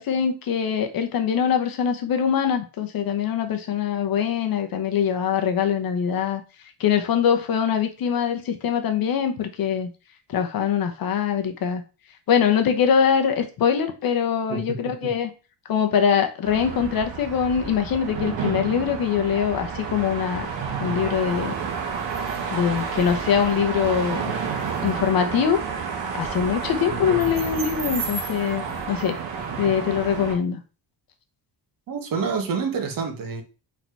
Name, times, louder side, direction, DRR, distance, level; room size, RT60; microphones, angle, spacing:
voice 1, 0.0-6.4 6.8-9.9 10.3-11.8 12.3-15.3 15.7-20.5 20.8-21.5 22.5-24.3 24.8-25.6 26.1-29.2 29.6-30.6, left 8 dB, 50° left, 1.0 m, -23 dB
sound 1, 16.4-30.4, right 6 dB, 70° right, 1.7 m, -30 dB
voice 2, 31.9-33.4, right 5 dB, 45° right, 1.3 m, -27 dB
4.8 x 4.3 x 4.6 m
cardioid pair, 170°, 45 cm